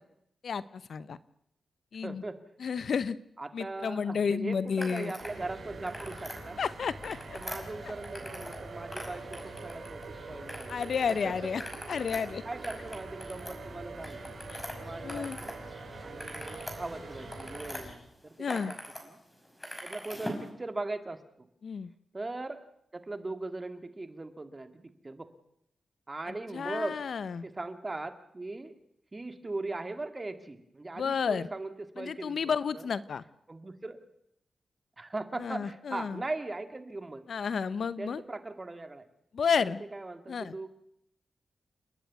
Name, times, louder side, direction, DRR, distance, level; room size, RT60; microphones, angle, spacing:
voice 1, 0.4-1.2 1.9-2.2 2.6-3.2 3.5-5.1 6.6-7.4 7.8-7.9 10.7-11.6 11.9-12.4 14.5-14.6 15.0-15.4 18.4-18.7 21.6-21.9 26.5-27.4 31.0-31.5 32.0-33.2 35.4-36.2 37.3-38.2 39.3-39.8 40.3-40.5, left 6 dB, 70° left, 16 dB, 0.8 m, -31 dB
voice 2, 2.0-2.4 3.4-6.6 7.3-10.0 10.3-10.8 11.2-11.4 12.5-14.2 14.8-15.5 16.0-19.2 19.8-21.5 22.1-22.6 22.9-25.3 26.1-27.0 27.4-28.7 29.1-32.9 33.5-34.0 35.0-37.3 38.0-39.1 39.9-40.7, right 2 dB, 25° right, 8 dB, 2.1 m, -39 dB
sound 1, 4.8-5.4 5.7-6.4 6.9-8.6 8.9-10.1 10.5-11.1 11.5-15.6 15.9-17.8 18.3-19.0 19.3-20.5, equal, 10° left, 5.5 m, -42 dB
sound 2, 5.2-17.7, right 5 dB, 70° right, 2.8 m, -46 dB
sound 3, 5.3-17.9, left 2 dB, 35° left, 5.6 m, -49 dB
29.5 x 10.5 x 9.4 m, 0.77 s
cardioid pair, 90°, 0 cm